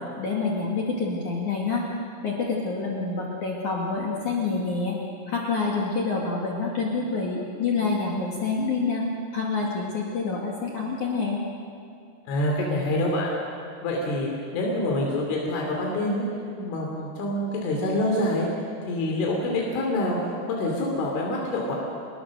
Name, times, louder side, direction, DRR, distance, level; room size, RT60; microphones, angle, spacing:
voice 1, 0.2-1.8 2.2-5.0 5.3-9.0 9.3-11.4, left 4 dB, 50° left, -3 dB, 3.1 m, -27 dB
voice 2, 12.3-13.4 13.8-16.3 16.6-18.5 18.9-20.2 20.5-21.8, left 1 dB, 90° left, -1 dB, 5.3 m, -26 dB
29.0 x 21.0 x 6.5 m, 2.3 s
omnidirectional pair, 5.4 m